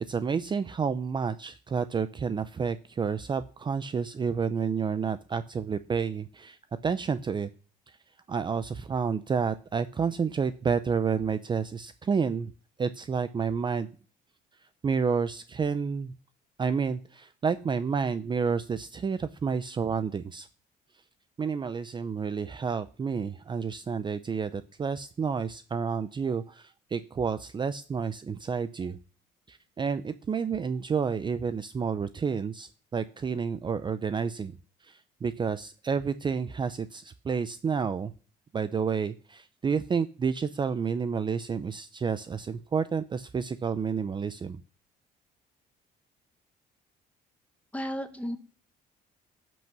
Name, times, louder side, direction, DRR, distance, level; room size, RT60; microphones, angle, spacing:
voice 1, 0.1-6.6 6.8-7.5 7.9-8.0 8.3-12.5 12.8-13.9 14.8-16.1 16.6-20.5 21.4-29.0 29.5-34.6 34.8-38.1 38.5-44.6, right 6 dB, 25° right, 13 dB, 0.6 m, -30 dB
voice 2, 47.7-48.4, equal, 10° left, 7 dB, 1.7 m, -33 dB
16.0 x 6.2 x 6.0 m, 0.39 s
cardioid pair, 110°, 17 cm